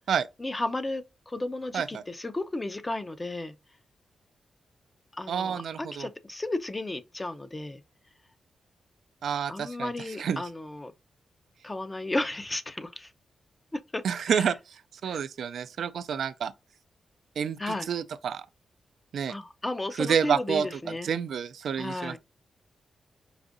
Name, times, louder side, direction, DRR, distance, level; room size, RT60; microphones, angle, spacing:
voice 1, 0.4-3.5 5.1-7.8 9.5-10.9 11.6-13.1 13.9-14.5 15.1-15.2 17.6-17.9 19.3-21.1 21.8-22.2, left 2 dB, 25° left, 0.6 m, -34 dB
voice 2, 5.3-6.1 9.2-9.9 10.2-10.4 14.0-16.5 17.4-18.5 19.1-19.4 20.0-20.7 21.0-22.2, right 7 dB, 75° right, 0.3 m, -29 dB
4.9 x 2.6 x 2.5 m
cardioid pair, 70°, 0 cm